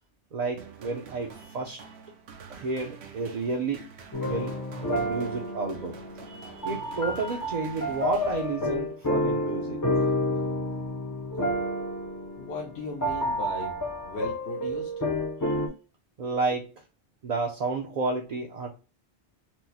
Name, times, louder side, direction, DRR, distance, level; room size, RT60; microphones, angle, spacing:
voice 1, 0.3-1.9 2.5-3.8 4.2-4.6 4.9-6.0 6.3-9.8 15.4-15.5 16.2-16.7 17.2-18.7, right 4 dB, 50° right, -1 dB, 0.5 m, -31 dB
sound 1, 0.6-8.9, right 6 dB, 80° right, 0.9 m, -47 dB
sound 2, 4.1-15.7, left 1 dB, 30° left, 0.4 m, -30 dB
voice 2, 12.4-13.8 14.0-14.9, left 2 dB, 75° left, 0 dB, 1.0 m, -37 dB
4.4 x 2.0 x 2.6 m, 0.33 s
omnidirectional pair, 1.1 m